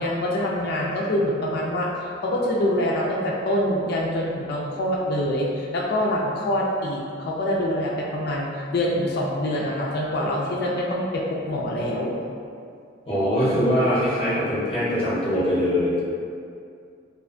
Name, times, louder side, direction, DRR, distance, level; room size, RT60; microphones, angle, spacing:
voice 1, 0.0-8.5 8.7-12.2, left 1 dB, 55° left, -3 dB, 0.3 m, -25 dB
voice 2, 13.0-16.2, equal, 30° left, -10 dB, 0.8 m, -22 dB
2.7 x 2.1 x 2.5 m, 2.3 s
head